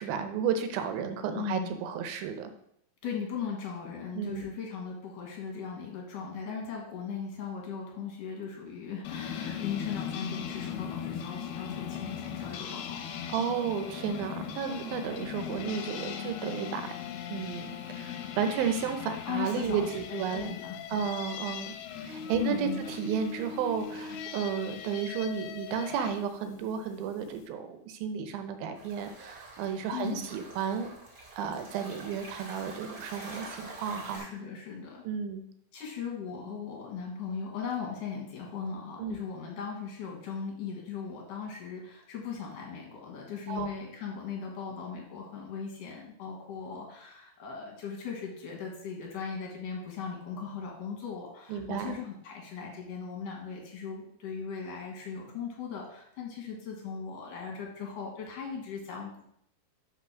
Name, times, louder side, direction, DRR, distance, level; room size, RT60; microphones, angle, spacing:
voice 1, 0.0-2.5 4.1-4.5 13.3-16.9 17.3-20.5 20.9-21.7 22.0-30.9 31.4-34.3 35.0-35.4 39.0-39.2 43.5-43.7 51.5-52.0, right 7 dB, 75° right, 8 dB, 2.5 m, -33 dB
voice 2, 1.3-1.8 3.0-13.0 19.2-21.0 22.4-22.8 29.9-30.3 33.9-35.0 35.7-59.2, left 6 dB, 60° left, 0 dB, 2.9 m, -38 dB
sound 1, 9.0-26.2, left 8 dB, 80° left, 2.6 m, -39 dB
sound 2, 28.7-34.2, right 2 dB, 35° right, 2.0 m, -46 dB
5.9 x 5.7 x 6.1 m, 0.72 s
omnidirectional pair, 4.6 m